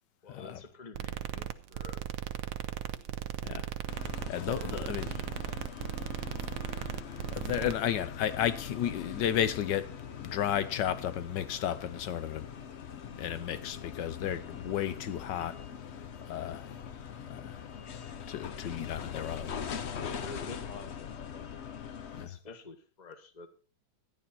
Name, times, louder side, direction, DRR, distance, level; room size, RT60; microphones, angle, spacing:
voice 1, 0.2-2.0 2.4-2.5 20.0-21.9 22.2-23.5, left 4 dB, 25° left, 1.1 m, -48 dB
sound 1, 0.9-7.7, right 10 dB, 75° right, 1.5 m, -37 dB
sound 2, 3.9-22.3, left 7 dB, 90° left, 0.5 m, -42 dB
voice 2, 4.3-5.2 7.1-9.9 10.2-12.5 13.2-15.6 16.3-16.7 17.3-17.6 18.3-19.6 22.2-22.4, left 10 dB, 65° left, 1.4 m, -33 dB
12.5 x 10.5 x 4.3 m
omnidirectional pair, 2.2 m